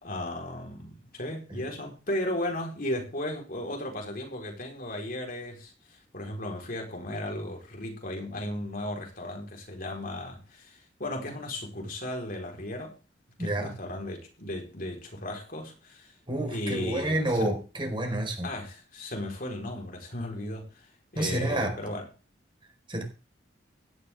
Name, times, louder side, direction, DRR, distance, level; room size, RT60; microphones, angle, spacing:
voice 1, 0.0-12.9 13.4-16.1 16.4-17.6 18.4-20.8 21.1-22.1, left 1 dB, 55° left, 4.4 m, -35 dB
voice 2, 13.4-13.7 16.3-18.5 21.1-21.7 22.9-23.0, right 1 dB, 30° right, 4.7 m, -29 dB
16.5 x 11.5 x 3.6 m
head